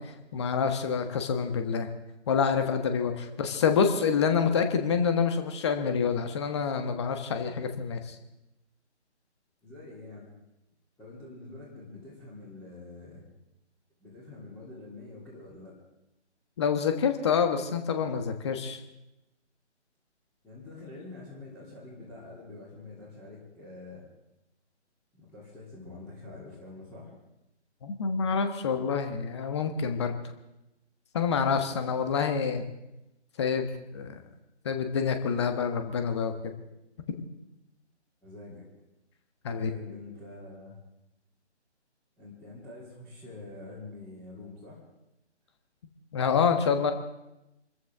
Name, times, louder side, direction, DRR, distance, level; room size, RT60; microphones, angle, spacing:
voice 1, 0.0-1.9 2.3-8.1 16.6-18.8 27.8-30.2 31.1-32.6 33.4-34.2 34.6-36.3 39.4-39.7 46.1-46.9, left 6 dB, 25° left, 7 dB, 1.3 m, -27 dB
voice 2, 9.6-10.3 11.0-13.2 14.0-15.7 20.4-24.1 25.1-27.2 38.2-38.7 39.5-40.8 42.2-44.8, left 2 dB, 5° left, -9 dB, 3.2 m, -46 dB
27.0 x 14.0 x 3.6 m, 0.91 s
figure-of-eight pair, 150°, 35 cm